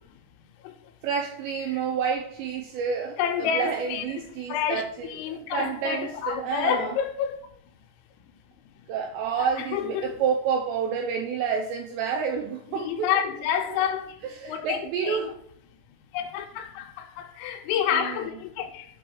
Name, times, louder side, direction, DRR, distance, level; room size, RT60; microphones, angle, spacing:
voice 1, 1.0-7.0 8.9-13.2 13.7-13.8 14.4-15.4 17.9-18.2, right 6 dB, 80° right, 2.6 m, -29 dB
voice 2, 3.2-4.1 4.5-4.8 5.1-7.4 9.4-10.2 12.7-14.1 14.5-14.8 15.0-15.2 16.1-18.9, left 8 dB, 85° left, 3.3 m, -28 dB
7.9 x 3.0 x 6.2 m
omnidirectional pair, 5.8 m